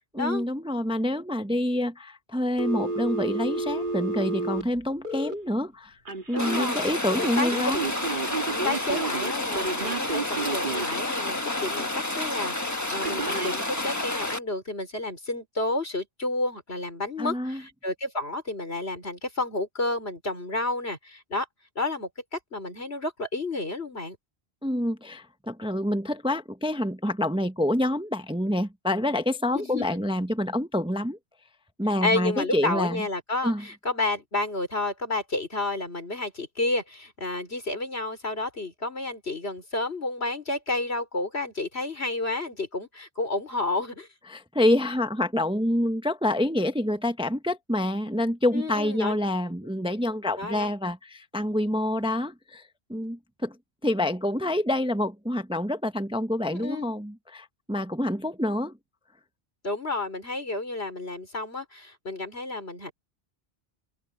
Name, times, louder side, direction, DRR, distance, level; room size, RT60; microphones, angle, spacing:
voice 1, 0.1-6.0 6.3-7.9 17.2-17.6 24.6-31.2 31.8-33.0 33.4-33.6 44.3-53.6 53.8-58.8, left 1 dB, 5° right, 0.7 m, -27 dB
Telephone, 2.6-5.3 6.1-6.7 7.2-11.0 13.0-13.6, right 3 dB, 50° right, 1.9 m, -31 dB
voice 2, 6.3-6.8 7.1-7.5 8.5-21.5 21.7-24.2 29.5-29.9 32.0-44.1 48.5-49.2 50.4-50.7 56.5-56.9 59.6-62.9, left 2 dB, 80° left, 5.1 m, -31 dB
Rain, 6.4-14.4, left 2 dB, 15° left, 1.2 m, -30 dB
open air
omnidirectional pair, 1.1 m